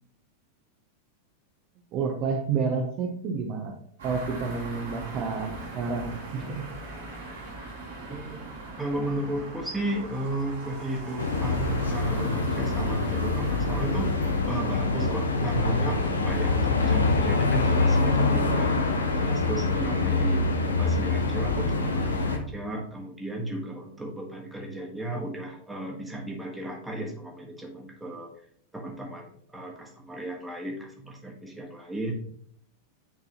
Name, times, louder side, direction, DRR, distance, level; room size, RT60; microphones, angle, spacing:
voice 1, 1.9-3.7 4.0-6.6, right 5 dB, 35° right, 2 dB, 0.8 m, -29 dB
sound 1, 4.0-22.4, right 2 dB, 65° right, 2.1 m, -42 dB
voice 2, 8.8-20.4 20.8-28.3 28.7-32.1, right 1 dB, 5° right, 0 dB, 1.4 m, -34 dB
sound 2, 11.2-22.4, left 3 dB, 75° left, 0.7 m, -25 dB
9.2 x 3.9 x 2.9 m, 0.62 s
figure-of-eight pair, 90°, 0 cm